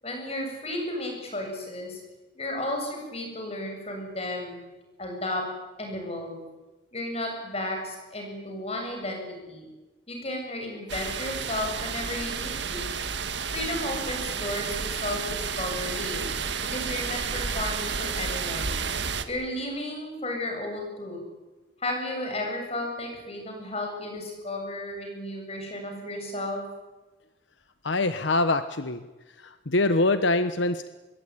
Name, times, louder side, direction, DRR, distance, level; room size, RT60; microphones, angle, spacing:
voice 1, 0.0-2.0 2.3-4.6 5.0-5.4 5.8-6.4 6.9-9.7 10.1-12.9 13.5-16.2 16.6-18.8 19.3-21.2 21.8-26.6, left 1 dB, 30° left, 2 dB, 7.8 m, -33 dB
sound 1, 10.9-19.3, right 5 dB, 65° right, 1.8 m, -31 dB
voice 2, 27.8-29.0 29.4-30.9, left 2 dB, 70° left, 11 dB, 1.1 m, -24 dB
25.5 x 21.5 x 9.9 m, 1.2 s
head